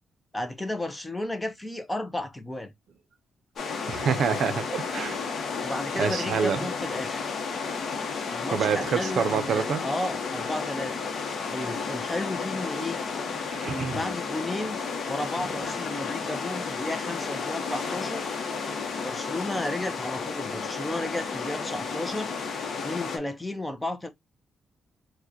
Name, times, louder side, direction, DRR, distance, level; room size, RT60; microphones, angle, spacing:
voice 1, 0.3-2.7 5.6-7.2 8.3-10.9 11.5-13.0 13.6-18.3 19.0-22.3 22.8-24.1, left 1 dB, 10° left, 0.4 m, -33 dB
sound 1, 3.6-23.2, left 5 dB, 50° left, 0.8 m, -32 dB
voice 2, 3.9-5.2 6.0-6.6 8.5-9.8 13.5-14.0, right 7 dB, 55° right, 0.5 m, -27 dB
4.7 x 2.1 x 2.7 m
cardioid pair, 170°, 0 cm